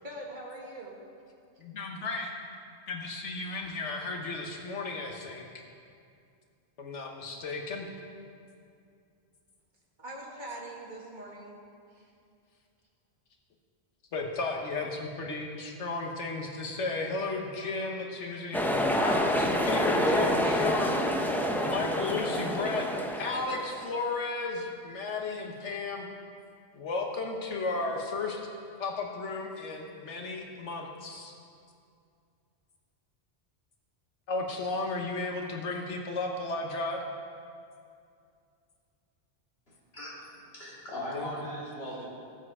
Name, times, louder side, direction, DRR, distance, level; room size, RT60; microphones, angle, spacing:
voice 1, 0.0-1.0 2.0-2.1 10.0-11.5 12.0-12.1, right 1 dB, 40° right, -2 dB, 1.7 m, -42 dB
voice 2, 1.6-2.3 2.9-5.5 6.8-7.9 14.1-18.6 19.0-21.0 21.6-22.9 23.2-26.1 26.7-28.4 28.8-31.3 34.3-37.0 41.1-41.3, left 3 dB, 85° left, 1 dB, 1.4 m, -34 dB
sound 1, 18.5-23.9, equal, ahead, 0.5 m, -27 dB
voice 3, 40.5-42.1, equal, 55° left, -7 dB, 3.2 m, -38 dB
15.5 x 7.4 x 4.8 m, 2.4 s
omnidirectional pair, 1.2 m